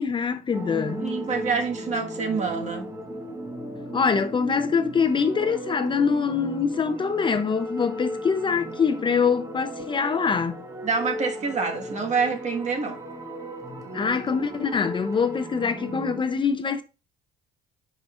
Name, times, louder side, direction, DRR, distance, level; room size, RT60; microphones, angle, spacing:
voice 1, 0.0-1.0 3.9-10.6 13.9-16.8, left 6 dB, 30° left, 0.6 m, -24 dB
sound 1, 0.5-16.2, right 1 dB, 20° right, 1.4 m, -35 dB
voice 2, 1.0-2.9 10.8-13.0, right 5 dB, 45° right, 1.6 m, -27 dB
10.0 x 5.0 x 2.5 m
cardioid pair, 110°, 17 cm